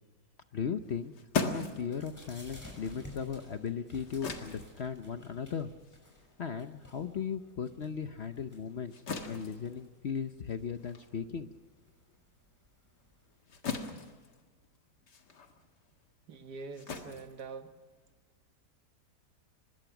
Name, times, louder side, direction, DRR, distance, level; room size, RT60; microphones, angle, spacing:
voice 1, 0.5-1.1 1.4-5.7 6.4-8.9 9.2-11.6, left 7 dB, 50° left, 9 dB, 0.9 m, -37 dB
sound 1, 0.8-7.6 8.0-18.2, left 4 dB, 85° left, 2.4 m, -41 dB
sound 2, 1.8-13.4, left 1 dB, 10° left, 5.8 m, -55 dB
voice 2, 16.3-17.7, right 4 dB, 75° right, 7 dB, 2.0 m, -44 dB
25.0 x 21.0 x 6.0 m, 1.3 s
omnidirectional pair, 1.8 m